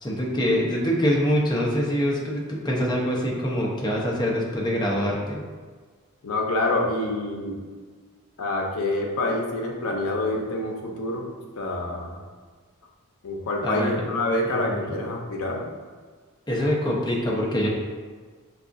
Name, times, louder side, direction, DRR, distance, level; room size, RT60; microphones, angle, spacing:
voice 1, 0.0-5.4 13.6-14.0 14.4-15.0 16.5-17.7, equal, 20° left, -3 dB, 0.6 m, -25 dB
voice 2, 6.2-7.6 8.4-12.2 13.2-15.6, left 2 dB, 70° left, 0 dB, 0.6 m, -27 dB
4.7 x 2.3 x 2.5 m, 1.5 s
head